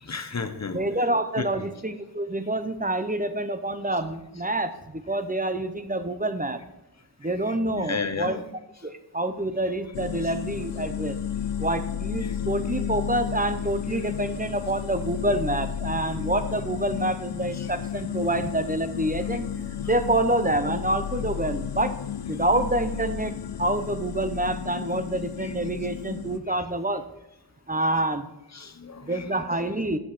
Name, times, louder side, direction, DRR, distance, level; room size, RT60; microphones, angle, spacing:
voice 1, 0.0-0.8 1.4-1.5 7.2-7.3 7.8-8.4 12.2-12.4 17.5-17.7 25.4-25.5 28.5-29.4, left 5 dB, 40° left, 10 dB, 0.8 m, -33 dB
voice 2, 0.7-6.6 7.2-8.4 8.8-11.2 11.6-19.5 19.8-21.9 22.3-23.3 23.6-27.0 27.7-28.3 29.0-30.0, right 1 dB, 20° right, 9 dB, 0.7 m, -27 dB
sound 1, 9.9-26.4, left 9 dB, 85° left, 0.6 m, -32 dB
7.8 x 6.0 x 5.0 m, 0.87 s
wide cardioid pair, 45°, 41 cm